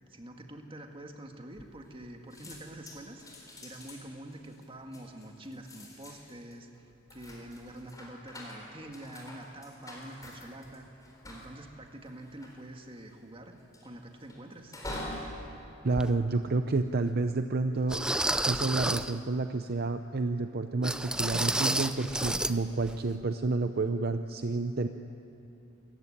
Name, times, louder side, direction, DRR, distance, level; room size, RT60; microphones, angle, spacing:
voice 1, 0.1-10.9 11.3-13.5 13.8-14.8, right 1 dB, 25° right, 4 dB, 1.8 m, -46 dB
sound 1, 1.5-2.1 2.3-16.9 17.4-17.8, left 1 dB, 15° left, 4.1 m, -46 dB
voice 2, 15.8-18.0 18.5-24.9, right 3 dB, 50° right, 8 dB, 0.6 m, -29 dB
sound 2, 16.0-16.1 16.8-16.9 17.9-19.2 20.8-22.6 22.8-23.0 23.4-23.5, right 1 dB, 5° right, 0.5 m, -30 dB
26.0 x 15.0 x 10.0 m, 2.8 s
head